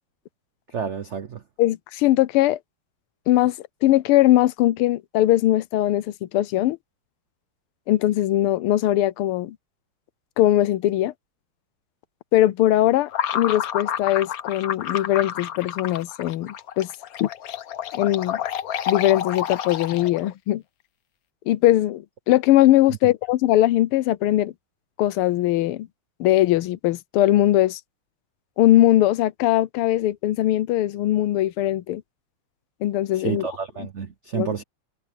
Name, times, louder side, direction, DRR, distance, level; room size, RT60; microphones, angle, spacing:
voice 1, 0.7-1.4 33.2-34.6, right 7 dB, 90° right, 0.6 m, -29 dB
voice 2, 1.6-2.6 3.3-3.6 3.8-6.8 7.9-9.6 10.4-11.1 12.3-16.9 17.2-17.3 17.9-18.4 18.9-20.6 21.5-24.5 25.0-25.9 26.2-27.8 28.6-32.0 32.8-33.5 34.3-34.5, left 14 dB, 90° left, 1.6 m, -20 dB
sound 1, 13.1-20.3, left 9 dB, 60° left, 1.0 m, -29 dB
omnidirectional pair, 2.4 m